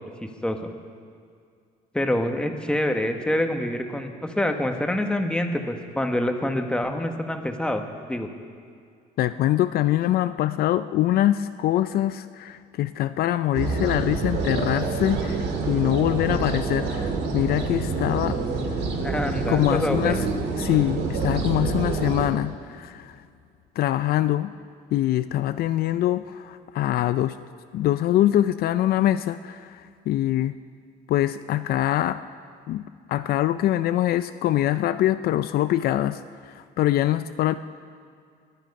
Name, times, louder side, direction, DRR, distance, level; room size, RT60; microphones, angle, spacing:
voice 1, 0.2-0.6 1.9-8.3 19.0-20.3, left 1 dB, 5° left, 4 dB, 1.2 m, -26 dB
voice 2, 9.2-18.4 19.5-20.2 20.6-23.2 23.8-24.5 24.9-27.4 27.7-30.6 31.1-32.2 32.7-32.8 33.1-36.2 36.5-37.6, left 13 dB, 65° left, 12 dB, 0.4 m, -24 dB
sound 1, 13.5-22.3, right 4 dB, 80° right, 1.9 m, -27 dB
21.5 x 9.2 x 5.3 m, 2.2 s
cardioid pair, 110°, 17 cm